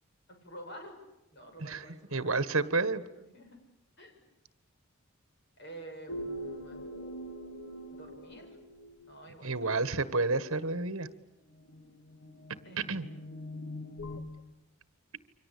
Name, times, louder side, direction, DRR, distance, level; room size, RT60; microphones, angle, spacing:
voice 1, 0.3-1.0 1.3-2.7 3.1-3.6 4.0-4.2 5.6-6.8 7.9-8.6 9.0-10.4 12.6-13.8, right 1 dB, 50° left, 4 dB, 6.9 m, -50 dB
voice 2, 2.1-3.0 9.4-11.1 12.9-13.1, right 3 dB, 65° right, 14 dB, 1.5 m, -30 dB
sound 1, 6.1-9.2 11.5-14.2, equal, 75° left, 2.4 m, -43 dB
29.0 x 24.5 x 8.5 m, 0.97 s
head